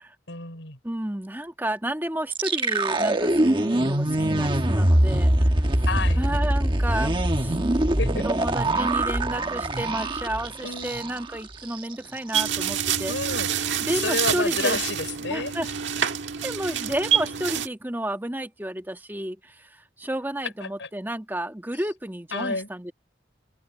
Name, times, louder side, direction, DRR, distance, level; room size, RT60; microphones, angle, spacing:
voice 1, 0.3-0.8 5.9-6.2 8.0-8.3 10.6-10.9 13.1-15.5 20.6-20.9 22.3-22.7, left 3 dB, 85° left, 5.8 m, -30 dB
voice 2, 0.8-5.9 6.2-7.7 8.1-13.1 13.8-14.8 15.3-15.7 16.4-22.9, right 1 dB, 10° right, 1.7 m, -31 dB
sound 1, 2.3-11.3 11.6-11.8 12.2-12.5, right 1 dB, 25° right, 1.4 m, -23 dB
sound 2, 12.3-17.7, right 8 dB, 85° right, 1.6 m, -27 dB
head